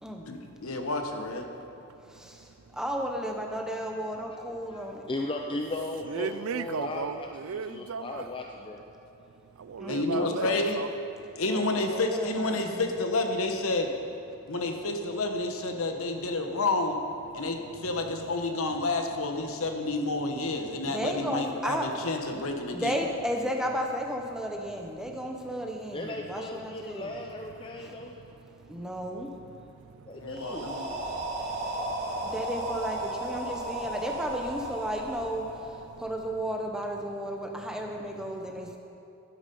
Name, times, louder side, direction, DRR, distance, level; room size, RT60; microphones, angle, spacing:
voice 1, 0.3-1.5 9.9-10.8 11.4-13.9 14.5-17.0 17.3-23.0 30.1-30.9, left 2 dB, 70° left, 5 dB, 1.1 m, -30 dB
voice 2, 2.1-5.0 9.8-10.4 11.6-13.0 20.9-21.9 22.7-27.1 27.8-27.9 28.7-29.3 32.2-35.5 36.0-38.8, equal, 5° right, 1 dB, 0.8 m, -34 dB
voice 3, 4.7-8.8 9.9-10.6 11.5-11.7 25.9-28.1 30.1-30.7, left 2 dB, 25° left, 1 dB, 0.5 m, -37 dB
voice 4, 6.1-8.3 9.5-10.9 17.7-17.8 25.5-25.6 27.6-28.0 28.2-29.0 29.5-30.6 31.0-32.3 35.9-36.0 38.6-38.8, right 6 dB, 65° right, 13 dB, 0.4 m, -38 dB
sound 1, 30.3-36.2, right 1 dB, 30° right, 2.0 m, -35 dB
11.5 x 9.8 x 5.4 m, 2.6 s
head